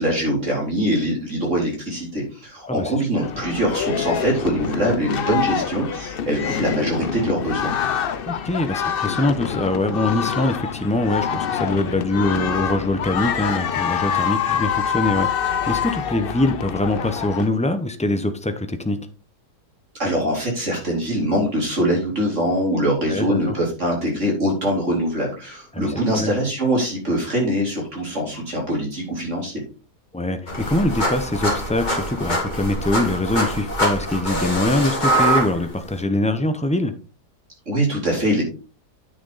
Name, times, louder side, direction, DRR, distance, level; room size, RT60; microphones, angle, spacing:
voice 1, 0.0-7.7 20.0-29.5 37.7-38.4, right 1 dB, 45° right, -2 dB, 4.2 m, -23 dB
sound 1, 3.2-17.5, left 8 dB, 60° left, 0.6 m, -26 dB
voice 2, 8.3-19.0 23.1-23.5 25.7-26.3 30.1-36.9, left 2 dB, 10° left, 8 dB, 0.4 m, -23 dB
sound 2, 30.5-36.0, right 1 dB, 25° left, 2.3 m, -24 dB
9.6 x 6.4 x 4.1 m, 0.35 s
omnidirectional pair, 1.7 m